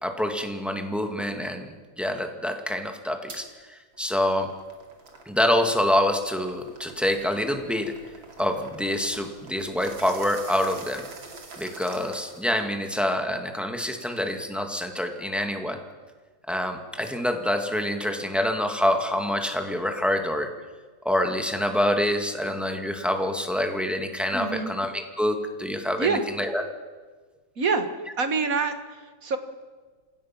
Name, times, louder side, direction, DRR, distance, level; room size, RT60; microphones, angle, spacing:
voice 1, 0.0-4.5 5.3-7.9 8.4-11.0 11.6-15.8 16.5-20.5 21.1-26.6, left 1 dB, ahead, 4 dB, 1.8 m, -26 dB
sound 1, 3.3-3.4 3.9-12.7, right 4 dB, 75° right, 3.3 m, -45 dB
voice 2, 24.3-24.7 26.0-26.2 27.6-27.9 28.2-29.4, right 4 dB, 45° right, 8 dB, 1.9 m, -26 dB
29.0 x 16.5 x 6.0 m, 1.4 s
omnidirectional pair, 2.2 m